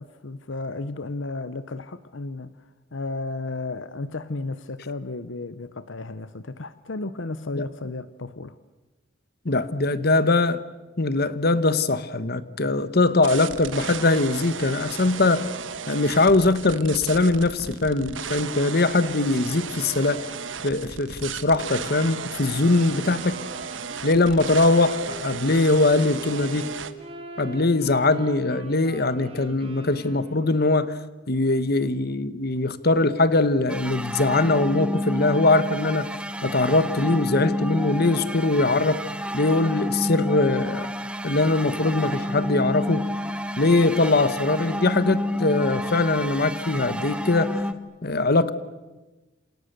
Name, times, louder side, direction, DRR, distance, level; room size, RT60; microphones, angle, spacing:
voice 1, 0.0-8.6, left 3 dB, 70° left, 14 dB, 0.9 m, -33 dB
voice 2, 9.4-10.6 11.0-15.5 15.9-20.3 20.6-23.4 24.0-26.7 27.4-31.0 31.3-36.1 36.4-39.0 39.3-40.9 41.2-43.0 43.6-47.6 48.0-48.5, left 2 dB, 50° left, 14 dB, 1.2 m, -21 dB
sound 1, 13.2-26.9, right 6 dB, 70° right, 1.3 m, -35 dB
Wind instrument woodwind instrument, 21.6-30.6, right 1 dB, 30° right, 5.0 m, -42 dB
sound 2, 33.7-47.7, left 1 dB, 5° right, 1.1 m, -29 dB
28.5 x 28.0 x 6.8 m, 1.1 s
head